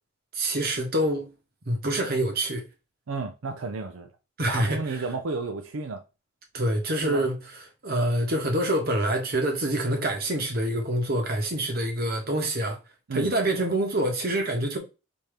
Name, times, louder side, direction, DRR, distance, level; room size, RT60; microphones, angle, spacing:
voice 1, 0.3-1.3 1.6-2.6 4.4-5.0 6.5-7.4 7.8-12.8 13.1-14.8, right 1 dB, 50° right, 1.1 m, -26 dB
voice 2, 3.1-4.1 4.5-6.0 7.0-7.3 13.1-13.3, right 3 dB, 80° right, 0.6 m, -32 dB
5.3 x 2.9 x 3.2 m
head